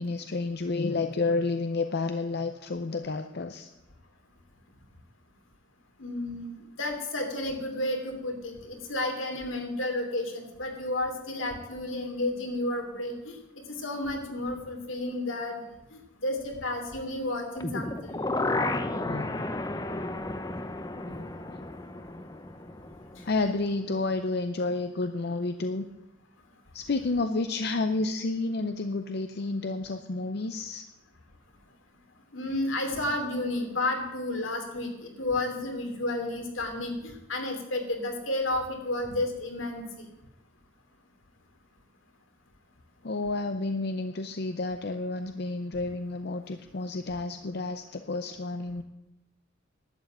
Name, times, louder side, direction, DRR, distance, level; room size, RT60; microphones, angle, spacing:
voice 1, 0.0-3.7 19.0-19.5 21.1-21.7 23.2-25.9 26.7-30.8 43.0-48.8, left 3 dB, 55° left, 8 dB, 0.6 m, -30 dB
voice 2, 6.0-13.4 13.7-15.6 16.2-18.1 32.3-39.8, left 2 dB, 80° left, 4 dB, 2.9 m, -31 dB
sound 1, 17.6-23.6 23.9-24.0, left 2 dB, 20° left, 0.7 m, -33 dB
11.5 x 8.3 x 9.0 m, 0.95 s
head